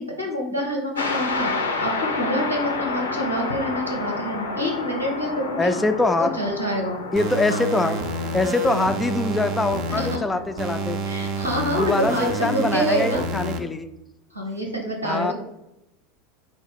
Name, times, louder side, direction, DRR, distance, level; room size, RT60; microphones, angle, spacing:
voice 1, 0.0-5.8 6.2-7.0 7.5-7.7 9.9-10.2 11.0-13.2 14.3-15.3, equal, 90° right, 1 dB, 0.9 m, -27 dB
sound 1, 0.9-13.5, left 3 dB, 80° left, 0.5 m, -31 dB
voice 2, 5.6-6.4 7.1-8.0 8.3-11.0 11.7-13.9 15.0-15.3, left 2 dB, 15° left, 10 dB, 0.3 m, -23 dB
sound 2, 7.2-10.2 10.6-13.6, right 3 dB, 50° right, 0.4 m, -28 dB
4.6 x 2.4 x 4.1 m, 0.88 s
figure-of-eight pair, 80°, 0 cm